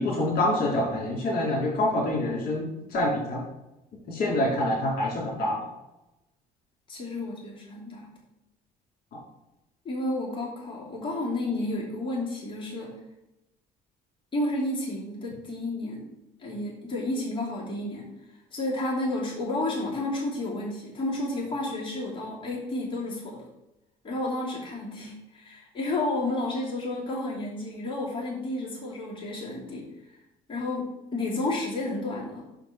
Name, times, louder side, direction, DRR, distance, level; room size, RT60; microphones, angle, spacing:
voice 1, 0.0-3.4 4.1-5.6, left 1 dB, 60° left, -3 dB, 3.0 m, -26 dB
voice 2, 6.9-8.1 9.8-12.9 14.3-16.0 16.4-18.0 18.5-23.4 24.0-29.8 30.5-32.4, left 2 dB, 30° left, -6 dB, 2.7 m, -31 dB
5.9 x 5.1 x 5.7 m, 0.94 s
cardioid pair, 110°, 17 cm